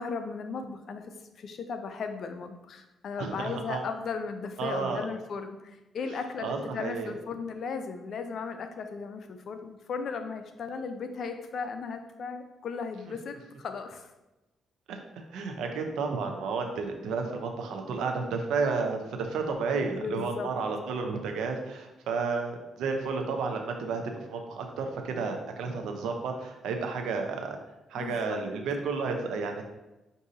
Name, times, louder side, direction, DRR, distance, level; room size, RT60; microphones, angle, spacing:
voice 1, 0.0-14.1 19.8-20.5 28.0-28.4, left 5 dB, 60° left, 7 dB, 0.5 m, -36 dB
voice 2, 3.2-3.8 4.6-5.0 6.4-7.1 14.9-15.0 15.3-24.0 24.3-27.6 27.9-29.6, right 4 dB, 80° right, 4 dB, 0.6 m, -31 dB
6.2 x 2.7 x 2.7 m, 0.99 s
cardioid pair, 90°, 0 cm